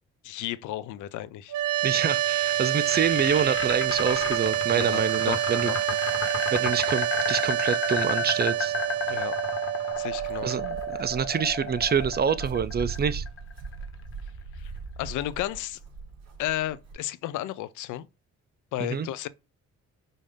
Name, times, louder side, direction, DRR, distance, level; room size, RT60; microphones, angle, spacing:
voice 1, 0.2-1.5 4.8-5.8 9.1-9.3 10.0-10.6 14.5-15.8 16.4-18.1 18.7-19.3, left 14 dB, 80° left, 0.5 m, -33 dB
sound 1, 1.5-12.6, right 13 dB, 90° right, 0.8 m, -28 dB
sound 2, 1.8-13.8, left 4 dB, 45° left, 1.3 m, -32 dB
voice 2, 1.8-5.7 6.5-8.7 10.4-13.2 18.8-19.1, right 7 dB, 35° right, 0.5 m, -27 dB
Walk footsteps, 9.9-16.9, right 5 dB, 55° right, 2.9 m, -40 dB
5.3 x 2.7 x 3.7 m
cardioid pair, 90°, 30 cm